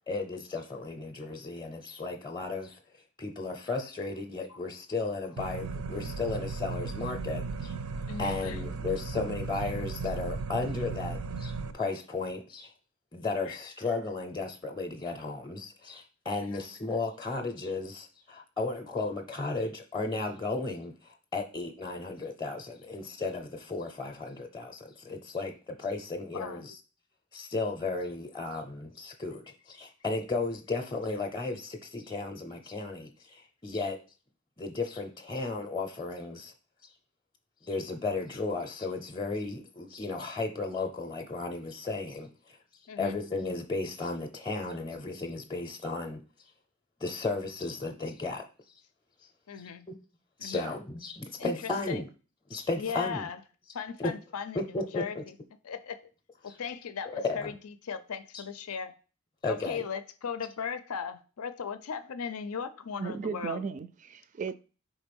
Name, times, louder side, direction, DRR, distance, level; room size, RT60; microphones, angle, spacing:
voice 1, 0.1-7.7 8.2-12.7 13.1-26.8 27.3-34.0 34.6-36.5 36.8-36.9 37.6-42.6 43.0-46.2 47.0-48.4 49.6-49.7 50.4-52.1 52.5-53.3 54.0-54.1 54.5-55.2 56.4-56.6 57.2-57.5 58.3-58.4 59.4-59.8, left 3 dB, 20° left, 0.6 m, -34 dB
sound 1, 5.4-11.7, right 4 dB, 85° right, 0.6 m, -36 dB
voice 2, 8.1-8.6 13.5-13.6 16.4-16.6 26.3-26.6 42.9-43.2 49.5-49.9 50.4-50.7 51.4-51.5 51.9-52.0 52.8-53.4 53.7-55.2 55.6-56.0 56.4-57.5 57.8-58.9 59.5-63.6, left 6 dB, 85° left, 0.5 m, -37 dB
voice 3, 63.0-64.5, right 5 dB, 35° right, 0.4 m, -35 dB
5.1 x 3.7 x 5.3 m
head